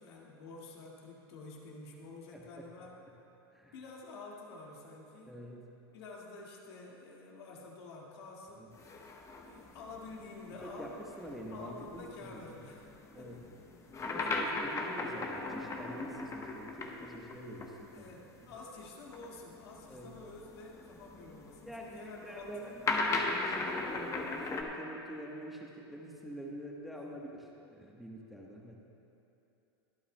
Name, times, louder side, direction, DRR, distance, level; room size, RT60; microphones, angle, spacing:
voice 1, 0.0-3.0 3.7-5.4 5.9-8.7 9.4-11.0 11.5-13.4 14.2-14.3 17.9-22.8 26.9-27.2, left 3 dB, 70° left, -2 dB, 2.0 m, -49 dB
voice 2, 2.3-2.7 3.5-3.7 5.3-5.6 8.6-8.7 10.6-10.9 11.2-12.6 13.1-13.4 14.0-18.0 18.4-18.5 19.9-20.1 21.7-22.6 23.3-28.7, equal, ahead, -2 dB, 1.1 m, -46 dB
sound 1, 8.7-17.7 18.0-18.1 19.0-24.6, left 3 dB, 20° left, 1.0 m, -38 dB
23.0 x 8.5 x 2.2 m, 2.9 s
hypercardioid pair, 110°, 14 cm